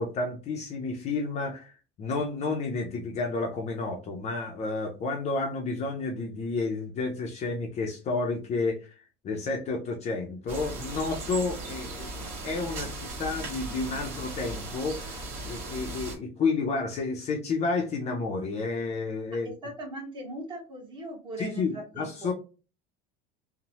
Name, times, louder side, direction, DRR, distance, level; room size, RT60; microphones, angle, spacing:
voice 1, 0.0-1.7 2.0-8.9 9.2-19.5 21.4-22.3, left 3 dB, 30° left, 2 dB, 0.5 m, -31 dB
sound 1, 10.5-16.2, right 2 dB, 65° right, 1.5 m, -37 dB
voice 2, 19.6-22.1, right 1 dB, 20° right, 2 dB, 0.9 m, -39 dB
3.0 x 2.0 x 2.7 m, 0.32 s
cardioid pair, 150°, 21 cm